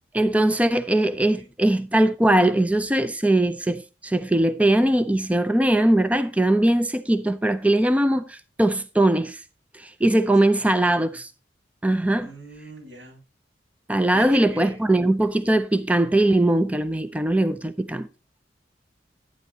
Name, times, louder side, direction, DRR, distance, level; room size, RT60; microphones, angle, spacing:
voice 1, 0.1-9.4 9.7-11.3 11.8-12.3 13.9-18.1, right 1 dB, 10° right, 0.5 m, -21 dB
voice 2, 10.3-11.2 12.2-13.2 14.1-14.8, right 1 dB, 75° right, 6.8 m, -42 dB
10.5 x 9.4 x 2.8 m
head